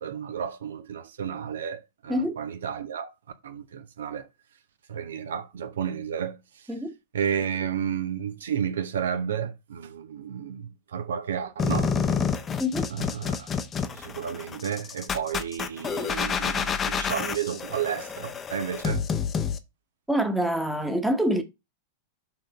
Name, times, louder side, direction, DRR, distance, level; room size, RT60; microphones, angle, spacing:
voice 1, 0.0-3.1 3.4-4.3 4.9-6.7 7.1-11.9 12.8-13.5 13.9-19.0, right 8 dB, 65° right, 0.6 m, -32 dB
sound 1, 11.6-19.6, left 6 dB, 20° left, 0.7 m, -29 dB
voice 2, 20.1-21.4, equal, 5° right, 1.1 m, -25 dB
5.9 x 3.8 x 5.2 m
figure-of-eight pair, 90°, 0 cm